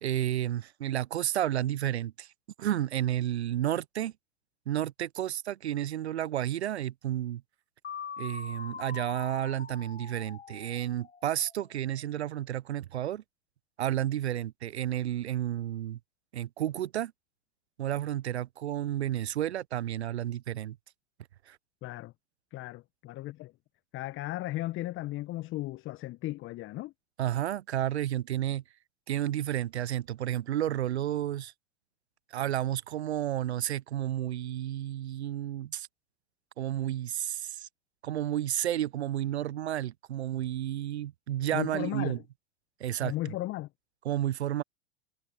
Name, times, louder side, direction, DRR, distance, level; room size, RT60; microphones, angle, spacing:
voice 1, 0.0-2.3 2.6-4.1 4.7-7.4 8.2-13.2 13.8-16.0 16.3-17.1 17.8-20.8 21.5-21.6 27.2-28.6 29.1-31.5 32.3-35.9 36.6-37.7 38.0-42.2 42.8-43.3 44.0-44.6, right 12 dB, 75° right, 0.7 m, -31 dB
sound 1, 7.8-11.7, left 6 dB, 85° left, 1.6 m, -43 dB
voice 2, 21.8-22.1 22.5-23.5 23.9-26.9 41.5-42.2 43.0-43.7, left 17 dB, 40° left, 1.3 m, -36 dB
figure-of-eight pair, 85°, 33 cm